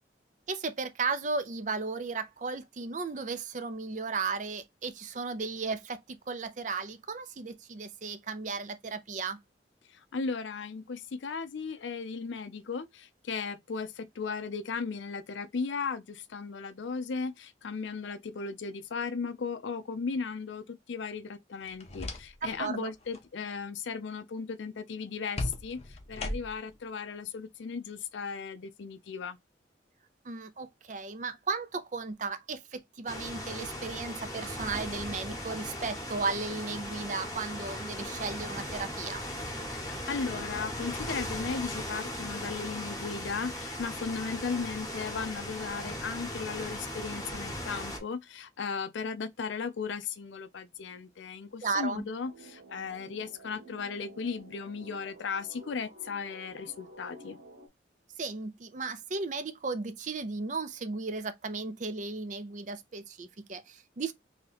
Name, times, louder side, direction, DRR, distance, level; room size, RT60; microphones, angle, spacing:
voice 1, 0.5-9.4 22.6-22.9 30.2-39.2 51.6-52.1 58.2-64.1, right 4 dB, 40° right, 0.5 m, -35 dB
voice 2, 9.9-29.4 39.7-57.4, left 5 dB, 70° left, 0.5 m, -36 dB
sound 1, 21.6-22.6 22.9-23.3 25.4-26.8, left 2 dB, 35° left, 0.6 m, -37 dB
sound 2, 33.1-48.0, left 1 dB, 15° left, 1.0 m, -38 dB
sound 3, 52.3-57.7, right 1 dB, 65° right, 1.1 m, -51 dB
2.8 x 2.8 x 4.0 m
head